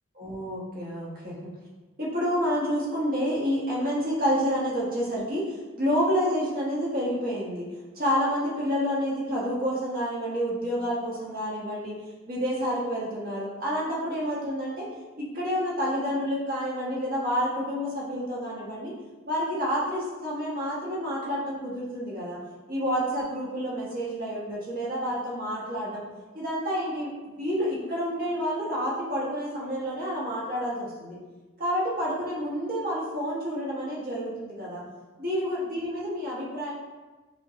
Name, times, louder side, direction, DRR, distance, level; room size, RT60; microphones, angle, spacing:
voice 1, 0.1-1.5 2.0-7.7 7.9-12.0 12.3-14.9 15.2-18.9 19.3-22.4 22.7-26.0 26.3-31.2 31.6-34.8 35.2-36.7, equal, 45° right, -6 dB, 1.0 m, -29 dB
5.2 x 2.2 x 2.8 m, 1.2 s
head